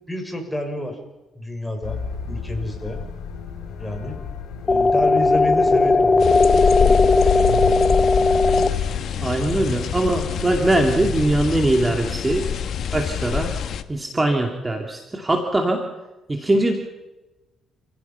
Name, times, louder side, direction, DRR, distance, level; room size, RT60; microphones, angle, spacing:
voice 1, 0.1-1.0 1.3-2.0 2.3-3.0 3.8-4.2 4.6-7.9, left 1 dB, 10° left, 4 dB, 6.1 m, -30 dB
sound 1, 1.8-11.3, left 5 dB, 90° left, 6.5 m, -33 dB
sound 2, 4.7-8.7, left 3 dB, 30° left, 1.3 m, -17 dB
sound 3, 6.2-13.8, left 7 dB, 65° left, 1.3 m, -25 dB
voice 2, 9.2-12.5 12.9-13.5 13.9-15.8 16.3-16.7, right 1 dB, 20° right, 3 dB, 2.7 m, -21 dB
29.0 x 17.0 x 5.8 m, 1.0 s
cardioid pair, 90°, 0 cm